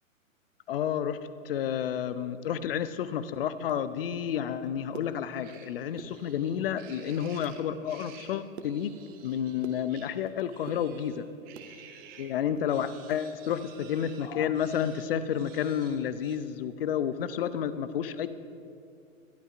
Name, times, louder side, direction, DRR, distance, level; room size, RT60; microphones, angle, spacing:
voice 1, 0.7-1.2 1.4-8.9 9.2-11.3 12.2-18.3, left 9 dB, 45° left, 13 dB, 0.6 m, -30 dB
sound 1, 4.7-5.6 5.9-6.7 7.1-7.6 8.0-10.3 10.6-11.7 12.1-13.7 13.9-14.0 14.4-14.6 15.0-15.2, right 5 dB, 50° right, 1.0 m, -47 dB
sound 2, 5.4-12.3 12.7-16.4, right 8 dB, 20° right, 0.8 m, -53 dB
21.0 x 11.5 x 2.5 m, 2.5 s
figure-of-eight pair, 110°, 41 cm